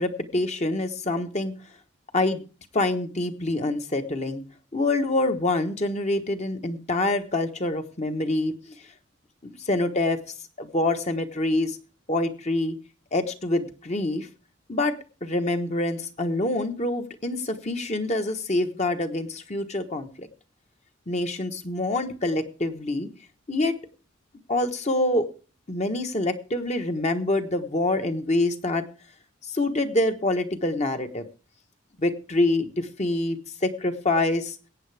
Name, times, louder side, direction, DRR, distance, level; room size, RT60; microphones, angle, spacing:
voice 1, 0.0-1.5 2.1-2.4 2.7-4.4 4.7-8.7 9.6-10.2 10.6-11.8 12.1-12.7 13.1-14.3 14.7-14.9 15.2-20.3 21.1-23.1 23.5-23.7 24.5-25.3 25.7-28.8 29.5-31.2 32.0-34.5, left 2 dB, 35° left, 6 dB, 1.3 m, -26 dB
22.0 x 8.9 x 3.4 m, 0.36 s
head